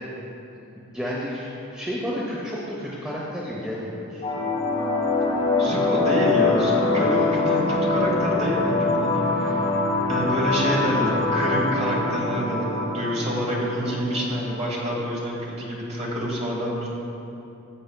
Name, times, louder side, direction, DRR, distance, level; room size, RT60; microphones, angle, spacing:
voice 1, 0.8-4.5 6.9-7.3 13.8-13.9, equal, 5° right, -6 dB, 0.7 m, -32 dB
sound 1, 4.2-15.2, left 3 dB, 30° left, 1.5 m, -24 dB
voice 2, 5.6-9.6 10.1-16.9, equal, 30° right, -3 dB, 1.4 m, -27 dB
13.0 x 6.9 x 2.3 m, 2.9 s
head